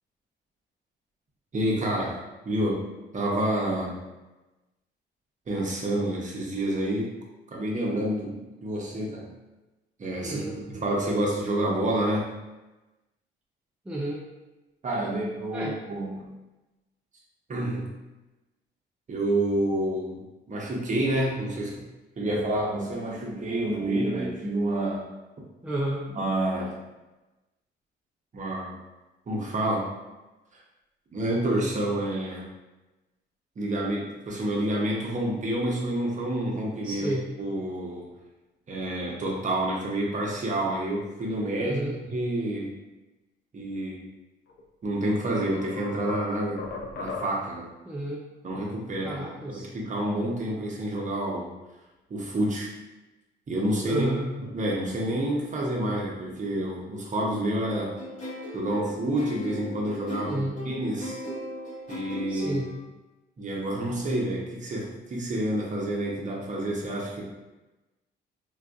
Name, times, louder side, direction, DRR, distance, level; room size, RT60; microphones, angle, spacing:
voice 1, 1.5-2.2 2.4-2.8 3.1-4.0 5.5-7.1 7.5-9.3 10.0-12.3 14.8-16.3 17.5-17.9 19.1-20.2 20.5-21.8 22.2-25.1 26.1-26.8 28.3-28.8 29.3-29.9 31.1-32.5 33.6-38.1 38.7-42.8 43.5-44.1 44.8-46.7 47.0-47.7 48.4-49.2 49.5-51.5 52.1-52.7 53.5-54.1 54.4-57.9 58.5-61.2 61.9-62.6 63.4-67.2, right 1 dB, 40° right, -2 dB, 0.9 m, -28 dB
voice 2, 10.2-10.6 13.9-14.2 15.5-15.8 25.6-26.1 36.8-37.2 41.6-42.0 47.8-48.2 49.0-49.7 53.9-54.3 60.2-60.6 62.3-62.7, right 1 dB, 5° right, -4 dB, 0.5 m, -31 dB
sound 1, 44.5-44.6 45.1-47.7, left 4 dB, 60° left, 0.6 m, -38 dB
sound 2, 57.7-62.8, left 1 dB, 40° left, 1.1 m, -38 dB
3.9 x 2.5 x 2.4 m, 1.1 s
cardioid pair, 90°, 20 cm